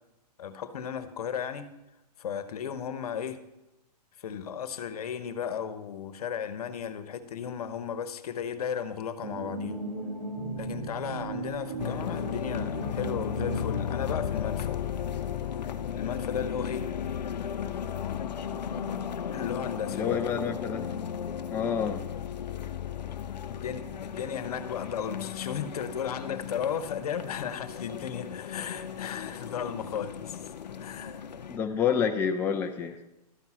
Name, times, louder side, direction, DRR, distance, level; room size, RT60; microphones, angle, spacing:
voice 1, 0.4-1.7 2.2-3.4 4.2-9.8 10.6-14.8 15.9-16.8 19.3-20.2 23.5-30.5 30.8-31.2, left 8 dB, 65° left, 12 dB, 1.0 m, -35 dB
sound 1, 9.2-14.4, right 2 dB, 65° right, 2.1 m, -37 dB
sound 2, 11.8-31.6, left 8 dB, 90° left, 0.6 m, -35 dB
voice 2, 19.9-20.9 21.5-22.0 31.5-33.0, left 7 dB, 10° left, 4 dB, 0.4 m, -28 dB
12.0 x 5.5 x 6.1 m, 0.98 s
hypercardioid pair, 140°, 21 cm